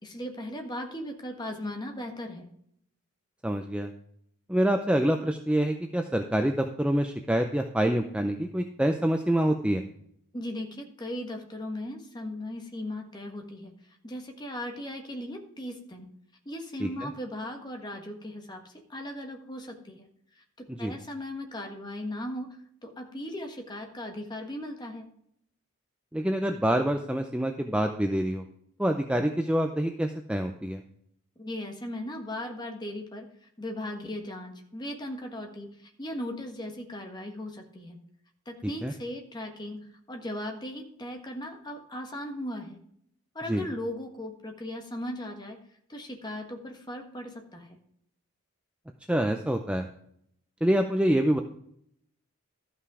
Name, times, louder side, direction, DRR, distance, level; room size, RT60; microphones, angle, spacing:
voice 1, 0.0-2.5 10.3-13.7 14.0-16.1 16.4-20.1 20.3-22.5 22.8-25.1 31.4-38.0 38.4-39.8 40.1-42.8 43.3-45.6 45.9-47.8, left 1 dB, 20° left, 3 dB, 1.3 m, -37 dB
voice 2, 3.4-3.9 4.5-9.8 16.8-17.1 20.8-20.9 26.1-28.4 28.8-30.8 38.8-38.9 43.5-43.6 49.1-49.9 50.6-51.4, right 1 dB, 5° right, 5 dB, 0.4 m, -26 dB
13.0 x 5.8 x 4.8 m, 0.70 s
head